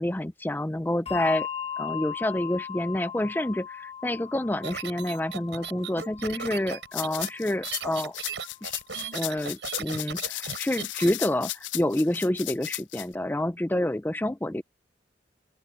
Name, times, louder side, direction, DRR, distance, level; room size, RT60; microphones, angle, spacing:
voice 1, 0.0-1.5 1.8-8.1 8.6-8.7 9.1-14.6, left 1 dB, 10° left, 0.4 m, -28 dB
Bell, 1.1-7.9, left 8 dB, 35° left, 1.6 m, -38 dB
sound 1, 4.6-11.1, right 6 dB, 70° right, 5.1 m, -37 dB
sound 2, 6.9-13.1, left 16 dB, 85° left, 0.5 m, -35 dB
open air
head